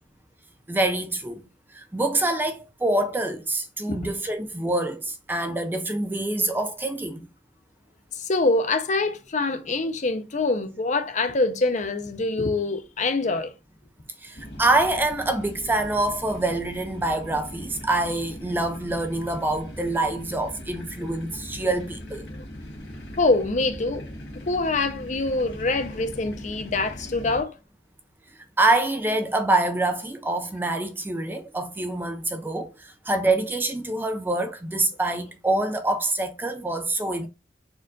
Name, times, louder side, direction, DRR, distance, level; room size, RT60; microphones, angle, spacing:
voice 1, 0.7-1.4 1.7-7.3 14.2-22.3 28.6-37.3, right 2 dB, 10° right, 0.4 m, -25 dB
voice 2, 8.2-13.5 21.0-21.1 23.2-24.0 24.5-27.6, left 3 dB, 45° left, 0.6 m, -25 dB
sound 1, 14.3-27.4, equal, 90° left, 1.5 m, -40 dB
4.4 x 2.5 x 3.7 m
head